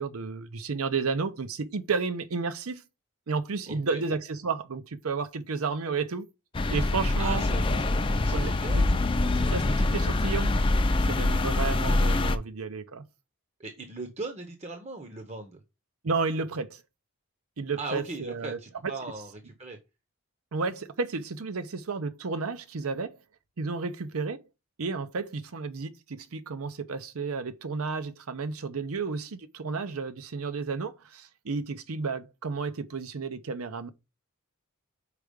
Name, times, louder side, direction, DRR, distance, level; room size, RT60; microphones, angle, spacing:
voice 1, 0.0-2.8 3.3-6.3 6.7-7.8 8.3-9.0 9.4-10.6 11.0-13.0 16.0-16.8 17.6-18.6 20.5-23.2 23.6-24.4 24.8-33.9, right 4 dB, 80° right, 0.7 m, -32 dB
voice 2, 3.7-4.0 7.2-7.6 8.2-8.8 13.6-15.6 17.8-19.8, right 3 dB, 30° right, 0.8 m, -38 dB
sound 1, 6.5-12.4, left 2 dB, 25° left, 0.4 m, -25 dB
4.9 x 4.7 x 5.1 m
head